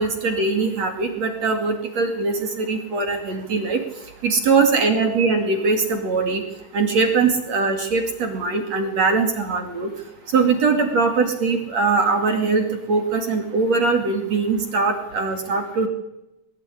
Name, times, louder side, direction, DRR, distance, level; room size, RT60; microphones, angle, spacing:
voice 1, 0.0-3.8 4.2-6.4 6.7-9.9 10.3-15.9, right 4 dB, 45° right, 5 dB, 3.3 m, -21 dB
22.0 x 20.0 x 10.0 m, 0.93 s
omnidirectional pair, 4.5 m